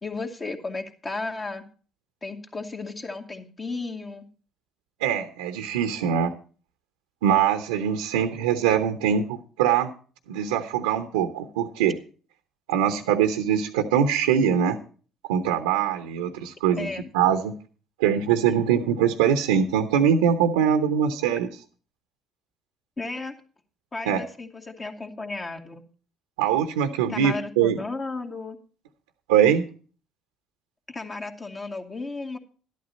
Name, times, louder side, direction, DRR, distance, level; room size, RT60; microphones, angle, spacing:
voice 1, 0.0-1.6 2.2-4.2 16.8-17.0 23.0-23.4 23.9-25.8 27.1-28.6 30.9-32.4, left 3 dB, 30° left, 4 dB, 2.2 m, -34 dB
voice 2, 5.0-6.3 7.2-9.9 10.3-11.9 12.7-14.8 15.3-16.9 17.1-17.5 18.0-21.5 24.1-24.2 26.4-27.8 29.3-29.6, right 8 dB, 80° right, 8 dB, 0.9 m, -22 dB
12.5 x 11.5 x 4.1 m, 0.39 s
hypercardioid pair, 55°, 0 cm